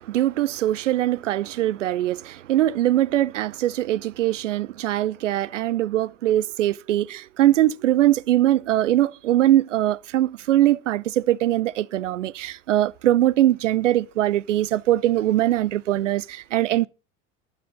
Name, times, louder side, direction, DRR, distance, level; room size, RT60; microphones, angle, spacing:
voice 1, 0.0-16.9, right 13 dB, 75° right, 0.7 m, -22 dB
11.0 x 11.0 x 5.4 m
figure-of-eight pair, 65°, 37 cm